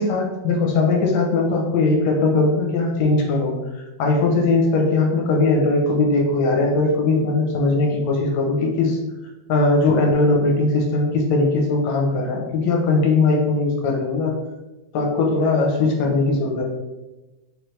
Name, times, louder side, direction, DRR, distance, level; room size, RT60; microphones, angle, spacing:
voice 1, 0.0-9.0 9.5-14.3 14.9-16.6, left 3 dB, 75° left, 0 dB, 1.9 m, -19 dB
4.7 x 3.3 x 3.0 m, 1.1 s
omnidirectional pair, 3.5 m